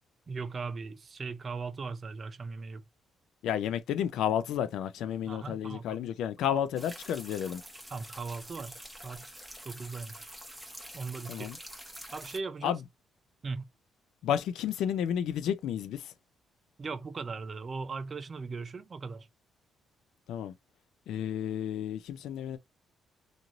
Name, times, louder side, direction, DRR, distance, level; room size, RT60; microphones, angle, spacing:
voice 1, 0.3-2.8 5.3-6.0 6.4-6.6 7.9-8.8 9.0-9.4 9.6-10.3 10.9-11.5 12.1-12.8 13.4-13.6 16.8-19.3, right 4 dB, 40° right, 0.5 m, -38 dB
voice 2, 3.4-7.6 11.3-11.6 12.6-12.8 14.2-16.1 20.3-20.5 21.1-22.6, left 9 dB, 80° left, 0.4 m, -31 dB
sound 1, 6.8-12.4, equal, 5° right, 0.8 m, -47 dB
3.0 x 2.6 x 2.5 m
cardioid pair, 90°, 0 cm